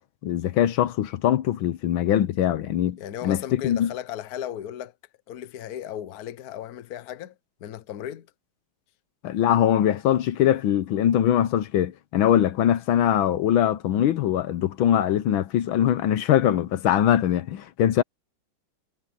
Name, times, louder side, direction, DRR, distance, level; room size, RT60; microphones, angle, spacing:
voice 1, 0.2-3.9 9.2-18.0, left 11 dB, 75° left, 1.6 m, -22 dB
voice 2, 3.0-4.9 5.3-7.3 7.6-8.3, left 11 dB, 55° left, 1.3 m, -35 dB
omnidirectional pair, 2.2 m